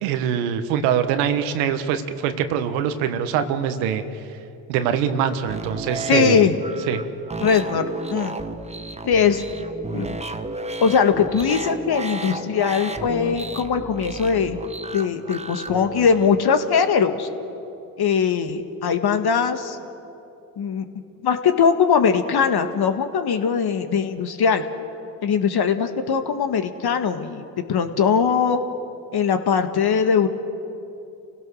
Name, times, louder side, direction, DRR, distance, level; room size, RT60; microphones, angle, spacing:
voice 1, 0.0-4.0 4.7-6.5 6.9-7.0, right 8 dB, 80° right, 9 dB, 1.5 m, -23 dB
sound 1, 5.5-16.3, right 2 dB, 15° right, 1.3 m, -33 dB
voice 2, 6.1-6.5 7.4-7.8 8.1-8.3 9.0-9.4 9.9-10.2 10.8-14.6 14.9-17.3 18.0-19.8 20.6-20.9 21.2-24.6 25.2-28.6 29.1-30.3, left 6 dB, 50° left, 8 dB, 1.8 m, -20 dB
29.0 x 16.5 x 6.5 m, 2.7 s
hypercardioid pair, 55°, 50 cm